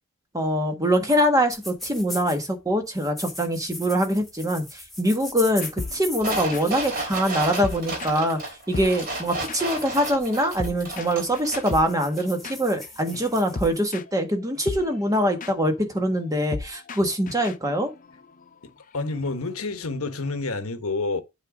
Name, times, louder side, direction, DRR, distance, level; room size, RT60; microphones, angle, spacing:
voice 1, 0.3-17.9, equal, 15° right, 1.5 m, -24 dB
sound 1, 1.5-2.5 2.9-13.8, left 1 dB, ahead, 2.1 m, -40 dB
sound 2, 5.6-8.5 8.7-20.3, left 3 dB, 40° left, 0.5 m, -38 dB
sound 3, 6.2-11.9 12.2-12.3, right 2 dB, 45° right, 3.0 m, -32 dB
voice 2, 18.6-21.2, left 3 dB, 75° left, 1.2 m, -29 dB
8.0 x 3.8 x 5.0 m
head